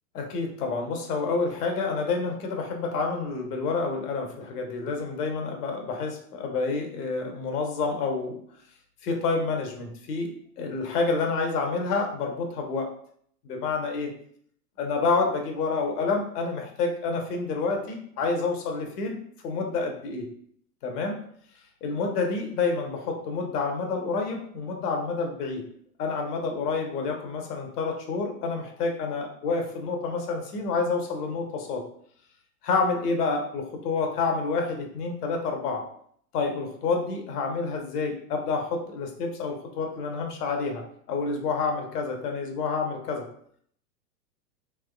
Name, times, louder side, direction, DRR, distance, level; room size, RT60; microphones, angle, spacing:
voice 1, 0.1-8.4 9.0-10.3 10.6-12.9 13.4-14.1 14.8-19.2 19.4-20.3 20.8-21.2 21.8-25.6 26.0-31.8 32.6-35.8 36.3-40.8 41.1-43.2, left 4 dB, 70° left, 2 dB, 1.0 m, -28 dB
3.4 x 3.1 x 2.3 m, 0.64 s
hypercardioid pair, 110°, 48 cm